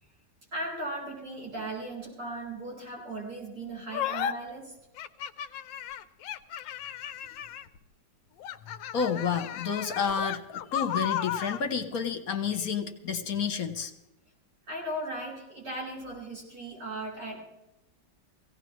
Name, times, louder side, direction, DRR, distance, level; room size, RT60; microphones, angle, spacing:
voice 1, 0.5-4.7 14.7-17.4, right 1 dB, 65° right, -4 dB, 6.0 m, -37 dB
sound 1, 3.9-4.3 5.0-7.8 8.4-11.6, left 9 dB, 80° left, 1.3 m, -34 dB
voice 2, 8.9-13.9, left 6 dB, 55° left, 6 dB, 1.5 m, -30 dB
17.5 x 17.0 x 3.1 m, 0.93 s
omnidirectional pair, 2.0 m